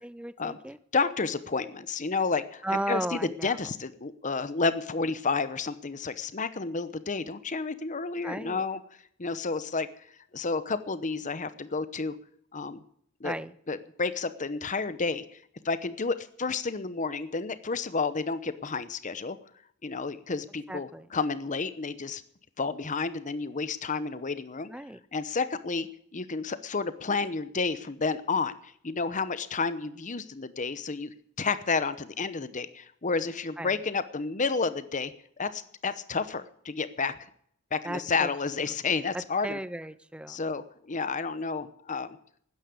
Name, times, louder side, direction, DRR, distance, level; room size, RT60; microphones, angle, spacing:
voice 1, 0.0-0.8 2.6-3.6 8.2-8.6 13.2-13.5 20.7-21.1 24.7-25.0 33.6-33.8 37.8-38.3 39.1-40.4, right 1 dB, 5° right, 16 dB, 0.5 m, -35 dB
voice 2, 0.9-8.8 9.2-10.1 10.3-12.2 12.5-12.8 13.2-13.3 13.7-15.3 15.6-19.4 19.8-22.2 22.6-24.7 25.1-35.1 35.4-37.2 37.7-39.6 40.3-42.2, left 4 dB, 35° left, 14 dB, 0.9 m, -31 dB
13.0 x 9.9 x 8.1 m, 0.65 s
head